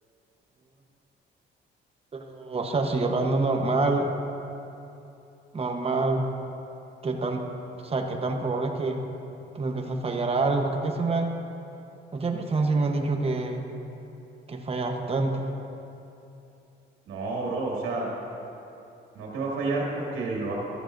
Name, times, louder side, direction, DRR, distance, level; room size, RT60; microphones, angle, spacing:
voice 1, 2.1-4.1 5.5-6.3 7.0-7.5 7.8-9.0 9.5-11.3 12.1-13.7 14.5-15.4, right 3 dB, 30° right, 3 dB, 1.1 m, -26 dB
voice 2, 17.1-18.1 19.1-20.5, right 3 dB, 85° right, -4 dB, 2.3 m, -30 dB
14.0 x 10.5 x 2.7 m, 2.8 s
cardioid pair, 90°, 20 cm